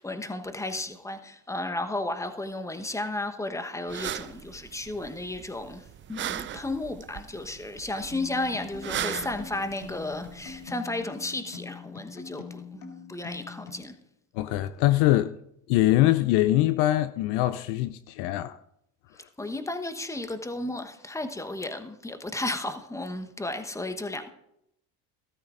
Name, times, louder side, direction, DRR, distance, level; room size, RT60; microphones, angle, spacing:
voice 1, 0.0-14.0 19.2-24.3, left 2 dB, 5° left, 1.1 m, -33 dB
sound 1, 3.9-10.6, right 11 dB, 25° right, 0.4 m, -38 dB
sound 2, 8.1-13.8, left 6 dB, 75° left, 2.0 m, -43 dB
voice 2, 14.3-15.3 15.7-18.6, left 15 dB, 60° left, 0.5 m, -23 dB
16.0 x 13.5 x 2.5 m
hypercardioid pair, 70°, 46 cm